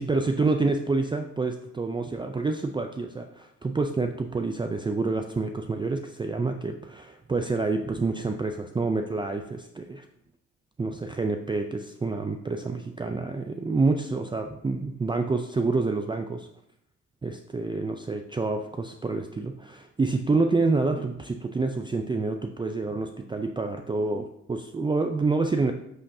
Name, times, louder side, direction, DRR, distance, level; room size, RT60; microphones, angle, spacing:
voice 1, 0.0-10.1 10.8-16.5 17.2-25.7, right 3 dB, 15° right, 5 dB, 0.4 m, -28 dB
8.5 x 5.6 x 2.7 m, 0.77 s
cardioid pair, 90°, 30 cm